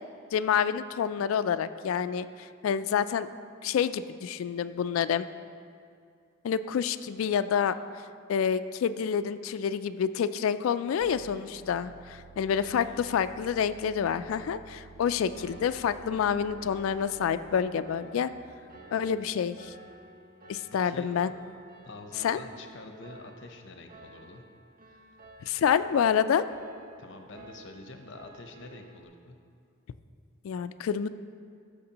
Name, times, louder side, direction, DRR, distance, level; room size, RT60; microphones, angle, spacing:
voice 1, 0.3-3.3 3.6-5.3 6.4-7.8 8.3-18.3 18.9-19.7 20.5-21.3 22.2-22.4 25.4-26.5 30.4-31.1, left 7 dB, 90° left, 12 dB, 0.3 m, -28 dB
sound 1, 11.0-17.2, right 4 dB, 90° right, 0.5 m, -52 dB
voice 2, 12.6-13.0 20.8-21.1 21.8-24.4 24.8-25.2 27.0-29.4, left 2 dB, 60° left, 5 dB, 0.8 m, -47 dB
Piano, 15.3-29.0, right 1 dB, 45° right, 0.8 m, -52 dB
13.5 x 6.5 x 2.9 m, 2.4 s
head